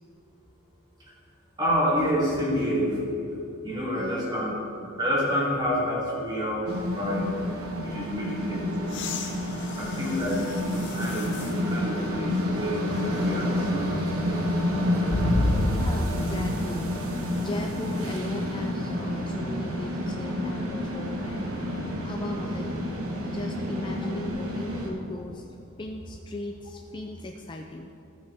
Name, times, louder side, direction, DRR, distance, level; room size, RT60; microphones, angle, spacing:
voice 1, 1.6-3.0 3.6-4.5 5.0-7.3 7.8-9.1 9.8-10.4 10.7-14.5, equal, 20° right, -6 dB, 2.2 m, -28 dB
sound 1, 6.7-24.9, left 1 dB, 80° right, 1.3 m, -29 dB
voice 2, 8.2-8.5 9.8-10.2 15.7-22.8 23.2-25.5 25.8-27.9, left 2 dB, 20° left, 3 dB, 0.3 m, -38 dB
sound 2, 8.9-11.6 12.3-12.4 15.1-16.3 18.2-18.3, left 1 dB, 55° left, 0.7 m, -30 dB
15.5 x 5.8 x 3.4 m, 2.7 s
head